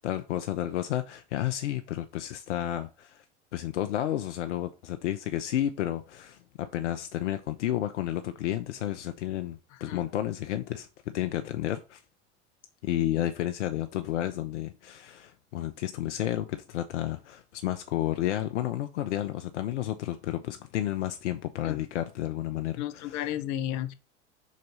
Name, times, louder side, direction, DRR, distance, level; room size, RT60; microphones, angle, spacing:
voice 1, 0.0-3.2 3.5-12.0 12.8-23.2, left 12 dB, 75° left, 0.6 m, -31 dB
voice 2, 9.7-10.0 21.6-21.8 22.8-23.9, left 12 dB, 55° left, 1.0 m, -33 dB
5.2 x 3.9 x 5.4 m
hypercardioid pair, 75°, 35 cm